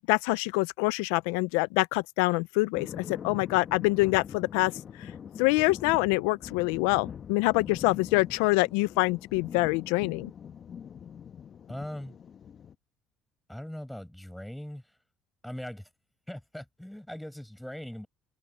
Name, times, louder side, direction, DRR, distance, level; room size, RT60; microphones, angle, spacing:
voice 1, 0.1-4.7 5.0-5.1 5.4-10.3, left 23 dB, 80° left, 0.6 m, -25 dB
sound 1, 2.7-12.7, left 8 dB, 45° left, 1.4 m, -43 dB
voice 2, 11.7-12.2 13.5-15.0 15.4-15.9 16.3-18.1, left 1 dB, 5° left, 6.9 m, -40 dB
supercardioid pair, 70°, 0 cm